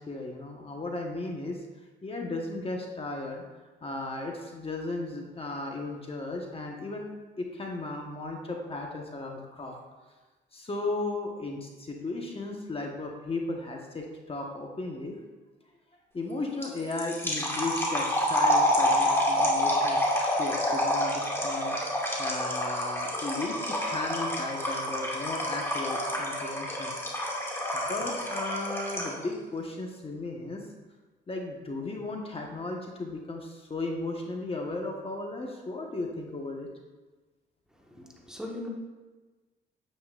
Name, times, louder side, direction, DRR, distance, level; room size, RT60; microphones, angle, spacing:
voice 1, 0.0-1.6 2.0-3.4 3.8-7.0 7.4-9.8 10.5-15.1 16.1-21.8 22.2-26.9 27.7-30.6 31.3-36.7, left 2 dB, 30° left, 0 dB, 1.2 m, -35 dB
sound 1, 16.6-29.2, equal, 10° left, 2.1 m, -28 dB
voice 2, 37.9-38.7, left 1 dB, 5° right, -1 dB, 1.4 m, -39 dB
9.6 x 8.7 x 2.5 m, 1.3 s
cardioid pair, 90°, 20 cm